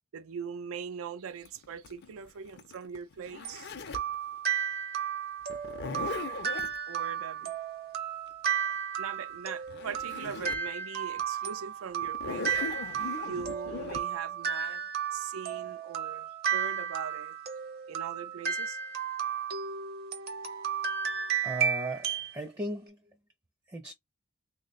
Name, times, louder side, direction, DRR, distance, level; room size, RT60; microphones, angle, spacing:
voice 1, 0.1-3.7 6.9-7.6 9.0-12.8 13.2-14.8 15.1-17.4 17.9-18.8, right 6 dB, 80° right, 0.4 m, -41 dB
Zipper (clothing), 1.5-4.2 5.5-6.8 9.4-9.5 9.7-10.7 11.2-11.3 12.0-14.0, left 4 dB, 55° left, 0.5 m, -39 dB
sound 1, 3.4-22.3, right 7 dB, 50° right, 0.8 m, -33 dB
voice 2, 21.4-23.0 23.7-23.9, right 2 dB, 15° right, 0.5 m, -36 dB
3.2 x 2.2 x 3.9 m
head